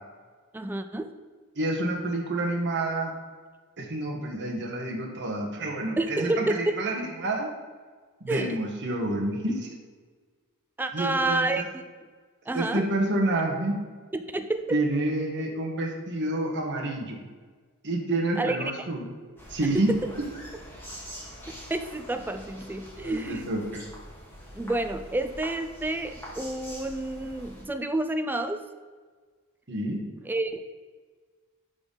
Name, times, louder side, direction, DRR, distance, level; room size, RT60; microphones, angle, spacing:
voice 1, 0.5-1.1 6.0-6.7 8.3-8.6 10.8-11.6 12.5-12.8 14.1-14.8 18.4-18.7 19.7-20.0 21.5-23.4 24.5-28.6 30.3-30.7, right 2 dB, 10° right, 8 dB, 0.3 m, -29 dB
voice 2, 1.5-3.1 3.8-7.5 8.2-9.7 10.9-11.7 12.5-13.7 14.7-17.2 17.8-19.1 19.5-19.9 23.0-23.8 29.7-30.0, right 2 dB, 55° right, 0 dB, 1.3 m, -28 dB
sound 1, 19.4-27.6, equal, 10° left, 1.8 m, -44 dB
11.0 x 4.1 x 3.9 m, 1.5 s
head